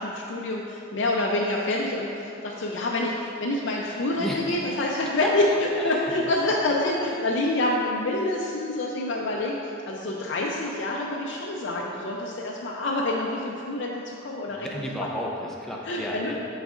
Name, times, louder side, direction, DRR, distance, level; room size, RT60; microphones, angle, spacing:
voice 1, 0.0-9.6 9.8-14.7 15.8-16.4, left 2 dB, 60° left, -3 dB, 0.5 m, -27 dB
voice 2, 4.2-4.9 5.2-5.3 5.8-6.1 14.5-16.4, equal, ahead, -3 dB, 0.6 m, -33 dB
10.5 x 4.0 x 2.5 m, 2.7 s
head